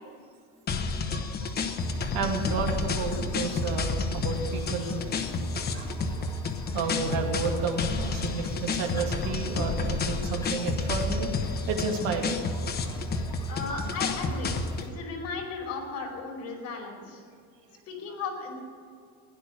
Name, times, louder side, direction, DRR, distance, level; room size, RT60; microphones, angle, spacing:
sound 1, 0.7-14.9, left 3 dB, 30° left, 1.1 m, -30 dB
voice 1, 1.1-1.8 2.1-5.1 5.7-6.3 6.7-11.3 11.7-12.6, right 4 dB, 70° right, 2 dB, 2.8 m, -32 dB
sound 2, 1.8-14.9, left 2 dB, 10° left, 1.4 m, -44 dB
voice 2, 13.5-14.6 14.9-17.2 17.9-18.6, left 4 dB, 45° left, -2 dB, 5.1 m, -35 dB
16.5 x 11.0 x 6.6 m, 2.4 s
cardioid pair, 165°, 35 cm